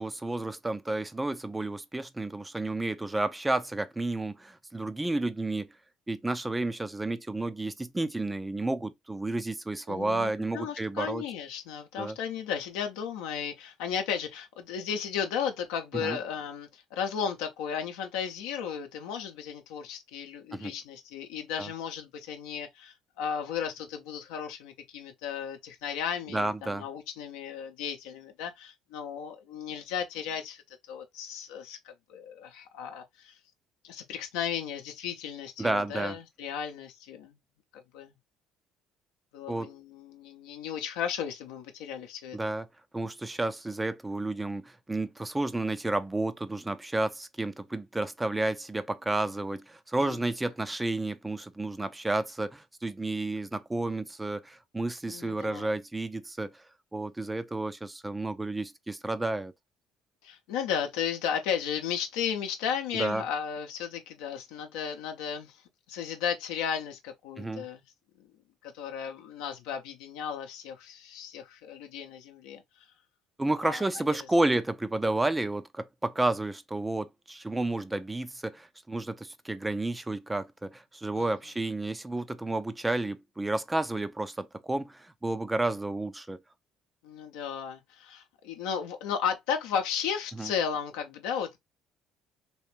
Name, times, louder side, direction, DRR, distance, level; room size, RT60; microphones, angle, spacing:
voice 1, 0.0-5.7 6.1-11.2 12.0-12.2 15.9-16.2 20.5-20.7 21.6-21.7 26.3-26.8 35.6-36.2 39.5-39.7 42.3-42.7 42.9-56.5 56.9-59.5 62.9-63.2 67.4-67.6 73.4-86.4 90.4-90.5, right 2 dB, 15° right, 0.4 m, -31 dB
voice 2, 9.9-30.6 30.9-33.4 33.8-37.4 37.7-38.1 39.3-42.4 50.0-50.2 55.1-55.7 60.2-65.6 65.9-67.8 68.6-72.6 73.6-74.2 81.1-81.3 87.0-91.6, left 7 dB, 65° left, 0.7 m, -35 dB
3.2 x 3.1 x 3.0 m
figure-of-eight pair, 55°, 0 cm